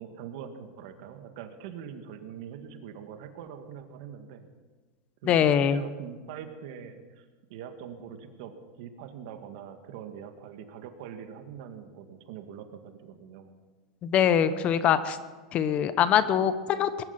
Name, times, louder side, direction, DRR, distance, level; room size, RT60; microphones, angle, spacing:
voice 1, 0.0-4.5 5.2-13.5, right 8 dB, 65° right, 7 dB, 1.9 m, -43 dB
voice 2, 5.2-5.8 14.0-15.2 15.5-17.0, left 9 dB, 35° left, 13 dB, 1.0 m, -23 dB
20.5 x 11.5 x 5.9 m, 1.4 s
supercardioid pair, 130°, 4 cm